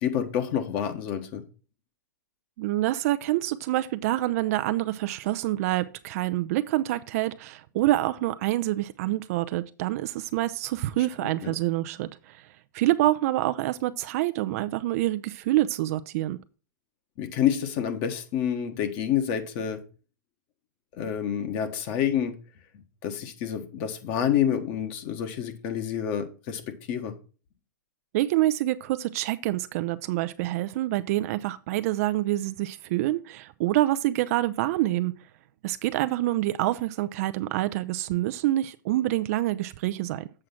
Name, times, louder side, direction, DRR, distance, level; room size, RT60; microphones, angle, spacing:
voice 1, 0.0-1.4 11.4-11.5 17.2-19.8 21.0-22.3 23.0-26.6 26.9-27.1, left 9 dB, 40° left, 1.3 m, -28 dB
voice 2, 2.6-12.5 12.7-16.4 28.1-35.1 35.6-40.3, right 16 dB, 50° right, 0.5 m, -26 dB
7.6 x 4.8 x 5.8 m
hypercardioid pair, 130°, 10 cm